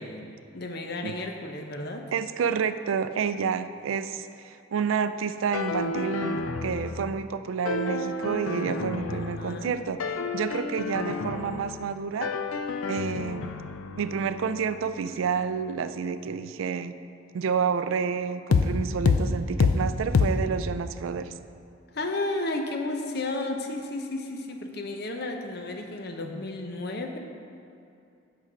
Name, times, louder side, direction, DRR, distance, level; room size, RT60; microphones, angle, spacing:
voice 1, 0.0-2.1 9.1-9.8 21.9-27.2, left 2 dB, 50° left, 4 dB, 0.7 m, -33 dB
voice 2, 2.1-10.0 10.3-12.3 12.9-13.5 14.0-16.9 17.3-21.3, right 6 dB, 80° right, 11 dB, 0.3 m, -29 dB
sound 1, 5.5-7.3 7.7-9.7 10.0-12.0 12.2-15.9 18.5-18.7 19.1-19.3 19.6-19.8 20.1-20.3, left 4 dB, 90° left, 0.4 m, -29 dB
6.3 x 6.2 x 5.4 m, 2.5 s
head